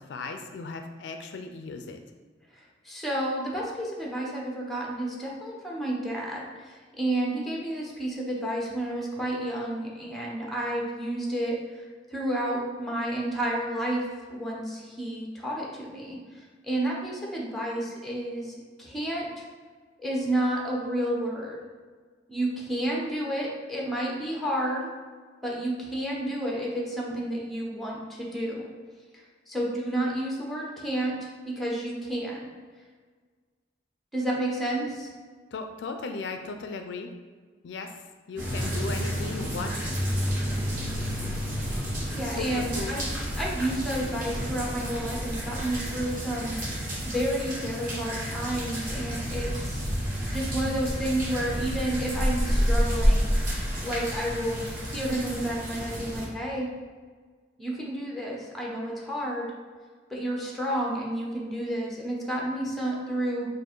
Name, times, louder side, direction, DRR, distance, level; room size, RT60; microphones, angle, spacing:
voice 1, 0.0-2.0 35.5-37.1 37.6-37.9 38.3-39.9 42.2-43.0, left 4 dB, 70° left, 6 dB, 0.4 m, -36 dB
voice 2, 2.8-11.8 12.1-14.0 14.3-16.2 16.6-19.3 20.0-21.6 22.3-24.9 25.4-28.7 29.5-32.5 34.1-35.1 42.1-43.1 43.3-49.8 50.3-53.3 53.8-54.6 54.9-56.7 57.6-59.5 60.1-63.5, right 1 dB, ahead, -2 dB, 0.8 m, -30 dB
sound 1, 38.4-56.2, equal, 50° right, 1.3 m, -29 dB
4.6 x 2.5 x 4.4 m, 1.5 s
head